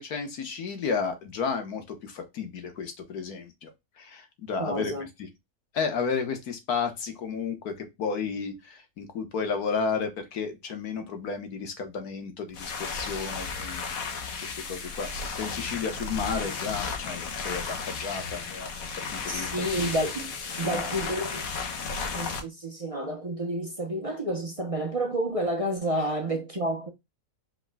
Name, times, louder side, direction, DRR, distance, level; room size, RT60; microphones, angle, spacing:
voice 1, 0.0-3.7 4.0-4.9 5.2-5.3 5.7-7.7 8.0-18.7 19.1-19.5 20.6-20.9, left 5 dB, 90° left, 1.7 m, -32 dB
voice 2, 4.6-5.1 19.3-21.4 22.1-26.9, right 1 dB, 30° right, 0.8 m, -30 dB
sound 1, 12.5-22.4, left 5 dB, 70° left, 1.4 m, -34 dB
4.9 x 4.6 x 2.3 m
omnidirectional pair, 1.6 m